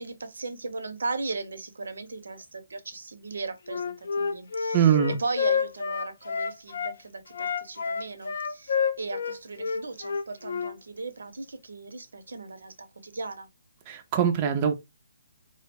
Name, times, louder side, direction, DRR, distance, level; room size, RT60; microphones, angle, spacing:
voice 1, 0.0-13.5, right 3 dB, 85° right, 0.6 m, -37 dB
Wind instrument woodwind instrument, 3.7-6.9 7.3-10.7, left 6 dB, 60° left, 0.4 m, -29 dB
voice 2, 4.7-5.2 13.9-14.7, right 8 dB, 20° right, 0.3 m, -22 dB
2.2 x 2.0 x 3.3 m
hypercardioid pair, 170°, 0 cm